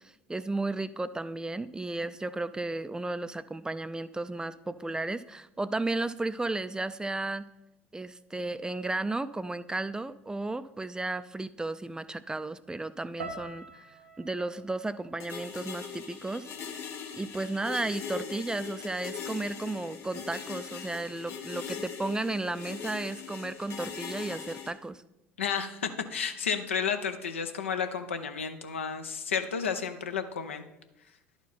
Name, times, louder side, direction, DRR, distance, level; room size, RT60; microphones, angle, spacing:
voice 1, 0.3-7.5 7.9-13.8 14.2-16.5 17.1-25.0, right 2 dB, 10° right, 14 dB, 0.3 m, -34 dB
sound 1, 13.2-17.4 17.7-18.4 19.0-19.3, right 2 dB, 85° right, 0.7 m, -48 dB
sound 2, 15.2-24.7, left 7 dB, 45° left, 1.1 m, -40 dB
voice 2, 25.4-30.6, left 6 dB, 85° left, 7 dB, 0.6 m, -32 dB
11.0 x 4.5 x 4.1 m, 0.91 s
figure-of-eight pair, 65°, 7 cm